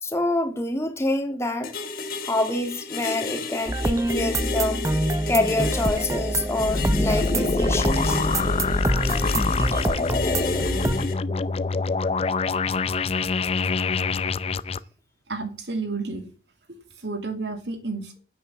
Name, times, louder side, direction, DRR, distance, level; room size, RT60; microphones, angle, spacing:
voice 1, 0.0-1.7 2.2-4.9 5.3-8.2, left 2 dB, 15° left, 2.2 m, -26 dB
sound 1, 1.6-11.1, left 4 dB, 55° left, 2.7 m, -33 dB
sound 2, 3.7-11.1, right 1 dB, 20° right, 0.6 m, -26 dB
sound 3, 6.6-14.8, left 3 dB, 35° left, 0.5 m, -25 dB
voice 2, 15.3-16.3 16.7-18.2, right 3 dB, 80° right, 2.5 m, -31 dB
9.4 x 8.4 x 7.0 m
head